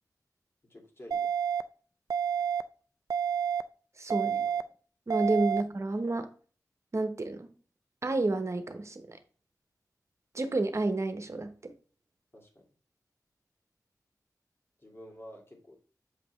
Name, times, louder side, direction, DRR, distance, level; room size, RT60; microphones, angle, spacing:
voice 1, 0.7-1.3 4.2-4.6 12.3-12.6 14.8-15.8, equal, 40° left, 0 dB, 2.3 m, -50 dB
sound 1, 1.1-1.6 2.1-2.6 3.1-3.6 4.1-4.6 5.1-5.6, right 8 dB, 70° right, 0.4 m, -29 dB
voice 2, 4.0-4.4 5.1-6.3 6.9-7.5 8.0-9.2 10.3-11.7, right 2 dB, 45° right, 9 dB, 1.0 m, -30 dB
7.7 x 5.1 x 3.2 m, 0.41 s
wide cardioid pair, 80°, 7 cm